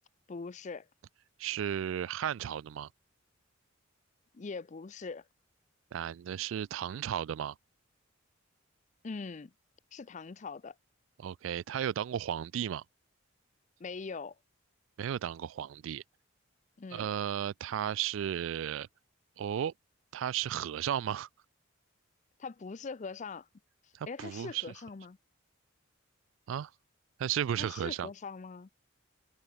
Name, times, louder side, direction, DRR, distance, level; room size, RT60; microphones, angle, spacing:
voice 1, 0.3-0.9 4.3-5.2 9.0-9.5 9.9-10.7 13.8-14.4 16.8-17.1 22.4-23.5 24.1-25.2 27.6-28.7, left 4 dB, 35° left, 0.5 m, -42 dB
voice 2, 1.4-2.9 5.9-7.5 11.2-12.8 15.0-16.0 16.9-18.9 19.4-19.7 20.1-21.3 23.9-24.7 26.5-26.7 27.2-28.1, right 9 dB, 70° right, 0.3 m, -34 dB
head